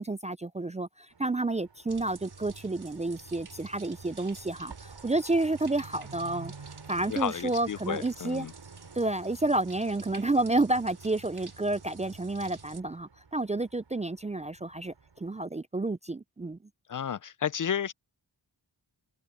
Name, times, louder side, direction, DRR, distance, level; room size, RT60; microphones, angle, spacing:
voice 1, 0.0-6.5 6.9-8.5 8.9-16.6, right 2 dB, 15° right, 0.4 m, -30 dB
sound 1, 1.1-15.4, right 5 dB, 75° right, 6.4 m, -53 dB
sound 2, 1.9-12.8, right 4 dB, 60° right, 3.8 m, -49 dB
voice 2, 7.1-8.5 16.9-17.9, left 8 dB, 45° left, 0.5 m, -32 dB
cardioid pair, 55°, 44 cm